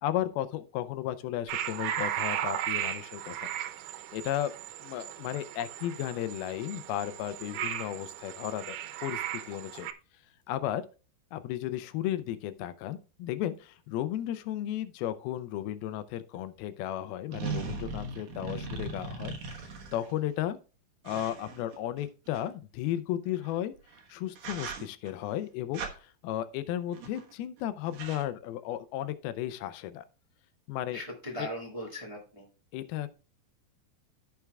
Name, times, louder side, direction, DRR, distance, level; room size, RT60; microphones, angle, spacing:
voice 1, 0.0-3.5 4.1-4.5 4.8-9.2 9.5-9.9 10.5-10.8 11.3-20.6 21.0-23.8 24.1-30.0 30.7-31.0 31.4-31.5 32.7-33.1, left 12 dB, 90° left, 2.6 m, -34 dB
sound 1, 1.5-9.9, right 11 dB, 90° right, 2.6 m, -36 dB
sound 2, 16.3-16.4 17.3-20.1 21.1-22.4 23.8-24.0 24.4-25.1 25.7-25.9 26.9-27.3 27.6-27.7 27.9-28.2, right 4 dB, 60° right, 2.0 m, -38 dB
voice 2, 30.9-32.4, equal, 15° right, 1.1 m, -39 dB
15.0 x 6.1 x 2.3 m
omnidirectional pair, 4.3 m